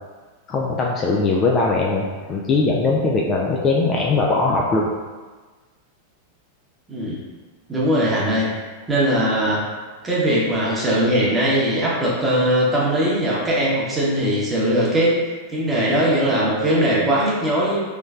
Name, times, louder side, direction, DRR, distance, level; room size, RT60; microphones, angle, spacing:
voice 1, 0.5-4.9, left 3 dB, 25° left, -2 dB, 0.3 m, -20 dB
voice 2, 6.9-7.2 7.7-8.5 8.9-9.6 10.0-15.2 15.5-17.8, right 1 dB, 15° right, -6 dB, 0.9 m, -20 dB
3.3 x 3.0 x 2.4 m, 1.3 s
figure-of-eight pair, 90°, 0 cm